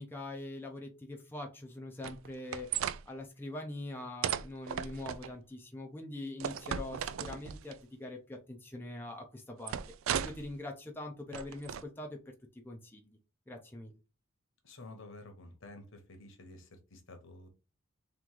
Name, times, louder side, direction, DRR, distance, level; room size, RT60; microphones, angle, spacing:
voice 1, 0.0-9.8 10.2-12.2 12.5-13.2 13.5-14.0, left 2 dB, 10° left, 1 dB, 0.6 m, -43 dB
sound 1, 2.0-3.0 4.2-5.3 6.4-7.7 9.7-10.5 11.3-11.8, right 8 dB, 65° right, 0.3 m, -36 dB
voice 2, 14.6-17.5, left 2 dB, 60° left, 5 dB, 1.1 m, -51 dB
3.6 x 3.1 x 3.8 m, 0.31 s
head